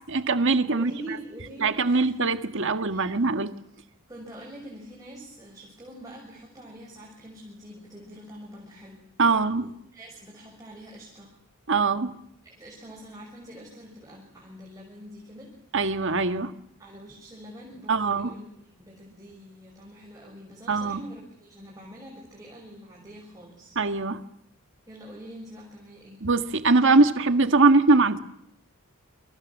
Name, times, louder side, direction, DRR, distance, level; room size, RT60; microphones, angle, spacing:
voice 1, 0.1-0.9 1.6-3.5 9.2-9.7 11.7-12.1 15.7-16.5 17.9-18.3 20.7-21.0 23.7-24.2 26.2-28.2, right 3 dB, 60° right, 9 dB, 1.7 m, -22 dB
voice 2, 0.7-2.1 2.7-3.1 4.1-9.0 9.3-11.3 12.6-15.5 16.8-23.8 24.9-26.2, equal, 15° right, -2 dB, 6.3 m, -45 dB
29.0 x 26.0 x 7.4 m, 0.75 s
head